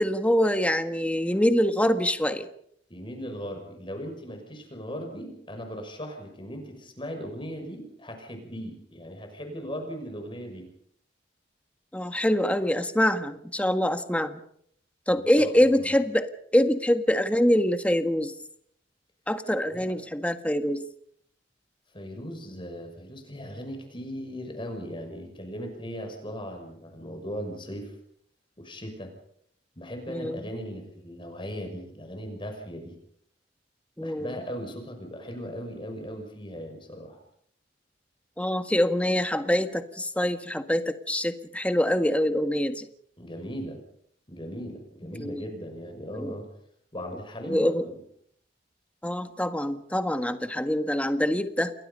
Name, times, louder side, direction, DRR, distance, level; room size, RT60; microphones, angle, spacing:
voice 1, 0.0-2.5 11.9-14.4 15.1-18.3 19.3-20.8 30.1-30.5 34.0-34.3 38.4-42.9 45.2-45.4 46.2-46.3 47.4-47.8 49.0-51.7, equal, 10° left, 8 dB, 1.6 m, -25 dB
voice 2, 2.9-10.7 15.1-15.9 19.7-19.9 21.9-27.9 28.6-29.1 29.8-32.9 34.0-37.2 43.2-43.8 44.3-46.5 46.9-48.0, equal, 30° left, 5 dB, 6.1 m, -38 dB
29.0 x 21.0 x 5.5 m, 0.67 s
head